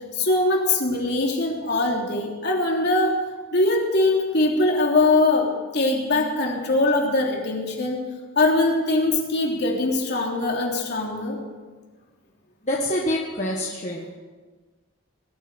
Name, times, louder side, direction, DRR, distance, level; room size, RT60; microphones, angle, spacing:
voice 1, 0.1-3.2 3.5-8.0 8.3-11.4, left 2 dB, 55° left, 0 dB, 3.4 m, -22 dB
voice 2, 12.6-14.1, left 1 dB, 35° left, -2 dB, 1.7 m, -26 dB
20.5 x 8.2 x 8.1 m, 1.3 s
head